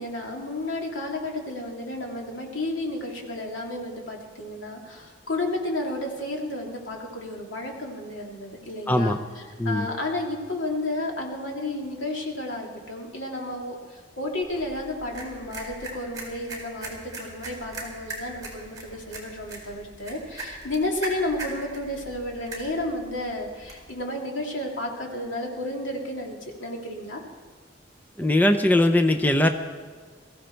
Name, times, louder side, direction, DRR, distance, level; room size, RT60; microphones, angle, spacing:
voice 1, 0.0-27.2, left 1 dB, 85° left, 0 dB, 2.7 m, -32 dB
voice 2, 8.9-9.2 9.6-9.9 28.2-29.5, left 1 dB, 10° left, 6 dB, 0.6 m, -20 dB
sound 1, 14.4-23.9, right 2 dB, 20° right, 4.1 m, -40 dB
22.0 x 14.5 x 4.5 m, 1.5 s
head